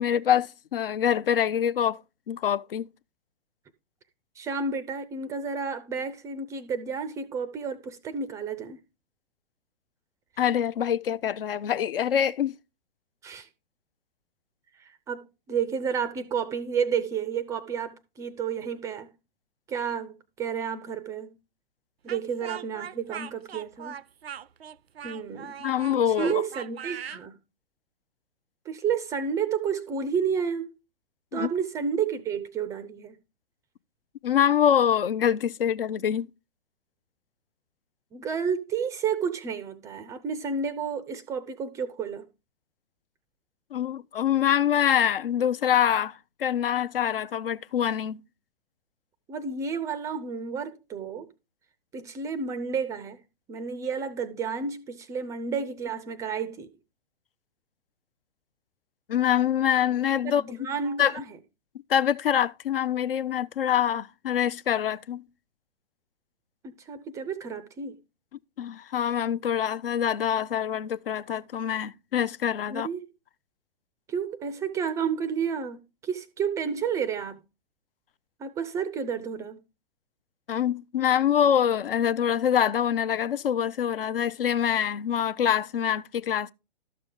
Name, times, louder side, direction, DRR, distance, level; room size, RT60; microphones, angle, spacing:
voice 1, 0.0-2.0 2.3-2.9 10.4-12.5 25.6-26.4 31.3-31.5 34.2-36.3 43.7-48.2 59.1-60.7 61.0-61.1 61.9-65.3 68.6-72.9 80.5-86.5, left 9 dB, 65° left, 0.5 m, -25 dB
voice 2, 4.4-8.8 13.2-13.5 14.8-19.1 19.7-21.3 22.0-24.0 25.0-25.6 25.9-27.4 28.7-30.7 31.3-33.2 38.1-42.2 49.3-51.3 51.9-53.2 53.5-56.7 60.2-61.3 66.6-68.0 72.7-73.1 74.1-77.4 78.4-79.6, right 6 dB, 10° right, 0.4 m, -31 dB
Speech, 22.1-27.2, right 9 dB, 80° right, 0.5 m, -40 dB
12.5 x 6.6 x 3.7 m
figure-of-eight pair, 115°, 30 cm